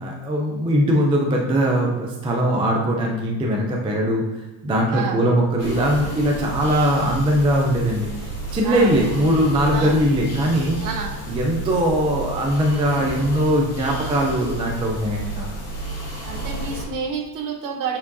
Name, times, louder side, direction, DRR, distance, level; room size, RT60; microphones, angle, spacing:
voice 1, 0.0-4.2 4.6-8.1 8.5-10.8 11.3-15.4, equal, 10° right, -1 dB, 0.3 m, -20 dB
voice 2, 4.9-5.2 8.6-9.0 9.7-10.0 10.8-11.2 16.2-18.0, right 5 dB, 40° right, 3 dB, 0.9 m, -29 dB
sound 1, 5.6-16.8, right 2 dB, 30° left, 1.9 m, -31 dB
8.3 x 4.6 x 2.6 m, 1.0 s
cardioid pair, 160°, 50 cm